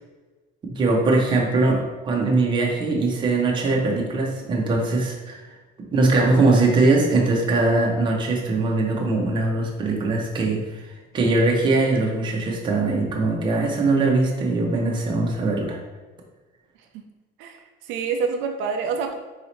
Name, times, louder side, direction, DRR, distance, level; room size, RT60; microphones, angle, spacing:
voice 1, 0.6-5.4 5.9-10.6 11.1-15.8, right 3 dB, 25° right, -1 dB, 0.7 m, -21 dB
voice 2, 17.4-19.2, right 5 dB, 75° right, 4 dB, 0.5 m, -27 dB
4.0 x 2.7 x 4.4 m, 1.3 s
cardioid pair, 175°, 20 cm